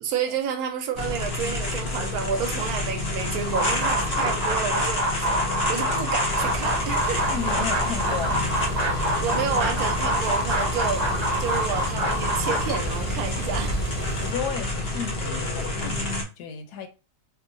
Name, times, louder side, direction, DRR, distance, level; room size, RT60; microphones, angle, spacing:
voice 1, 0.0-5.3 5.7-7.3 9.2-11.1 11.4-14.1, right 7 dB, 75° right, 1.0 m, -30 dB
sound 1, 0.9-16.2, left 2 dB, 55° left, 0.6 m, -29 dB
sound 2, 3.4-12.8, right 1 dB, 35° right, 0.7 m, -26 dB
sound 3, 6.3-14.3, right 2 dB, 10° left, 0.5 m, -34 dB
voice 2, 7.3-8.5 14.0-16.1 16.4-16.9, left 7 dB, 80° left, 1.1 m, -33 dB
2.9 x 2.1 x 2.5 m
omnidirectional pair, 1.7 m